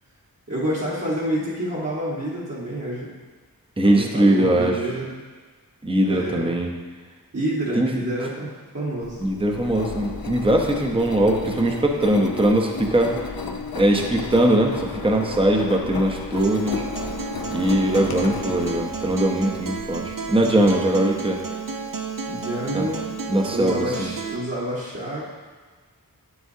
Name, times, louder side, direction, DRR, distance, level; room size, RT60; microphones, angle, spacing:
voice 1, 0.5-3.1 3.8-5.1 6.0-6.5 7.3-9.2 22.3-25.3, right 1 dB, 45° right, -8 dB, 1.4 m, -28 dB
voice 2, 3.8-4.8 5.8-6.7 7.8-7.9 8.2-8.3 9.2-13.2 13.7-16.9 17.5-21.4 22.7-22.9 23.3-24.1, right 1 dB, 15° right, 1 dB, 0.8 m, -21 dB
Engine, 9.0-20.7, left 4 dB, 75° left, 0.7 m, -33 dB
Acoustic guitar, 16.4-24.4, right 5 dB, 65° right, 0.8 m, -32 dB
8.8 x 8.0 x 2.8 m, 1.4 s
wide cardioid pair, 70°, 36 cm